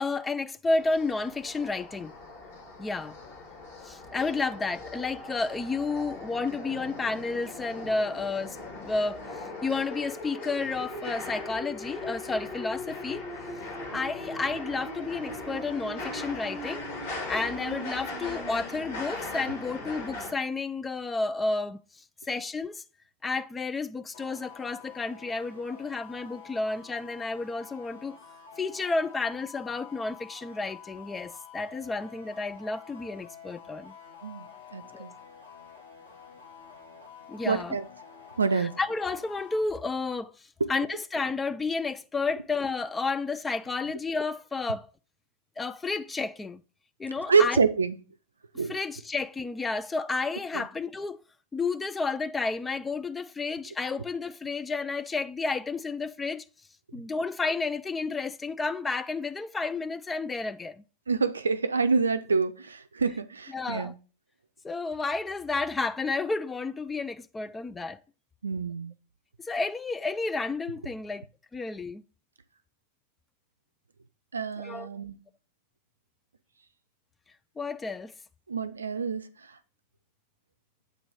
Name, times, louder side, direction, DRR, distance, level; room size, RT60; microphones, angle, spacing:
voice 1, 0.0-2.1 2.8-3.2 3.8-8.6 8.8-9.2 9.6-13.3 13.9-16.8 17.3-22.8 23.2-28.2 28.6-33.9 34.9-35.1 37.3-37.8 38.5-40.3 40.7-44.9 45.6-46.6 47.0-47.6 48.5-51.2 51.5-56.4 56.9-60.8 63.5-63.9 64.6-68.0 69.4-71.3 71.5-72.0 74.6-74.9 77.6-78.1, left 3 dB, 15° left, 0.4 m, -31 dB
sound 1, 0.8-20.3, left 2 dB, 55° left, 1.9 m, -39 dB
sound 2, 24.1-39.6, left 7 dB, 80° left, 1.7 m, -49 dB
voice 2, 34.7-35.1 37.4-37.8 38.4-38.7 47.3-48.0 48.6-48.7 50.5-50.6 61.1-63.9 68.4-68.9 74.3-75.2 78.5-79.3, right 5 dB, 75° right, 0.5 m, -26 dB
7.9 x 3.0 x 4.9 m
figure-of-eight pair, 90°, 0 cm